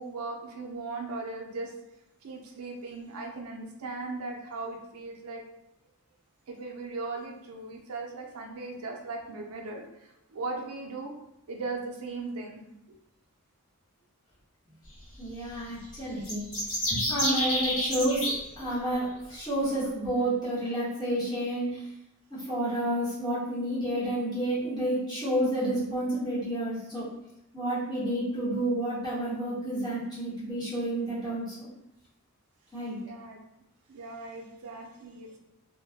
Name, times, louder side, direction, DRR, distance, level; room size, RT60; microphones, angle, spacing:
voice 1, 0.0-1.7 2.2-5.4 6.5-11.2 11.5-12.6 12.9-13.0 33.0-33.4 33.9-35.4, right 3 dB, 80° right, 1 dB, 0.4 m, -38 dB
voice 2, 15.2-16.6 16.9-21.9 22.3-27.1 27.5-31.7 32.7-33.0, right 1 dB, 20° left, -10 dB, 1.0 m, -30 dB
sound 1, 16.2-18.3, equal, 65° left, 1.0 m, -28 dB
2.2 x 2.0 x 2.7 m, 0.86 s
head